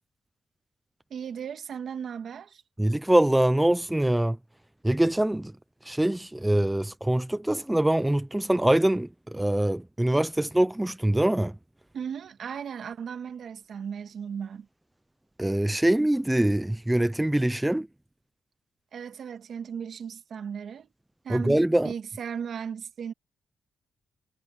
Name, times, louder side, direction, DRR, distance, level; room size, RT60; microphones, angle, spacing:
voice 1, 1.1-2.6 11.9-14.7 18.9-20.9 21.2-23.1, right 7 dB, 65° right, 2.0 m, -36 dB
voice 2, 2.8-4.4 4.8-5.5 5.8-11.6 15.4-17.9 21.3-21.9, right 1 dB, 10° right, 0.6 m, -24 dB
cardioid pair, 100°, 0 cm